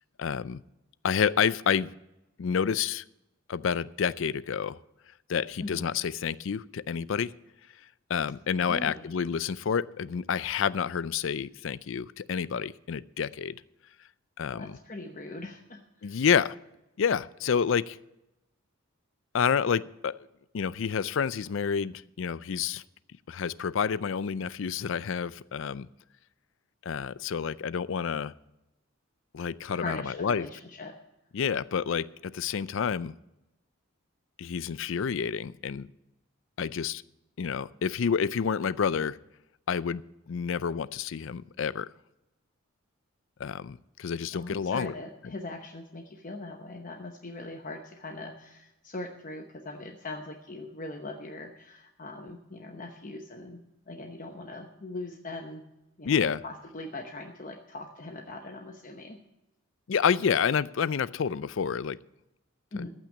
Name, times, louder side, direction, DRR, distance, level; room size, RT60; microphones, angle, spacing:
voice 1, 0.2-0.6 1.0-1.9 2.4-3.0 3.5-4.8 5.3-7.3 8.1-13.6 14.4-14.8 16.0-16.5 17.0-18.0 19.3-20.3 20.5-22.8 23.3-25.9 26.8-28.3 29.3-30.5 31.3-33.1 34.4-35.9 36.6-37.0 37.4-39.2 39.7-40.0 40.3-41.9 43.4-44.9 45.2-45.3 56.0-56.4 59.9-62.0 62.7-62.8, left 7 dB, 65° left, 18 dB, 0.4 m, -29 dB
voice 2, 8.6-9.1 14.5-16.2 29.7-30.9 44.3-53.6 53.9-55.6 56.0-59.2 62.7-62.9, left 2 dB, 40° left, 4 dB, 0.9 m, -40 dB
14.5 x 6.1 x 8.2 m, 0.96 s
head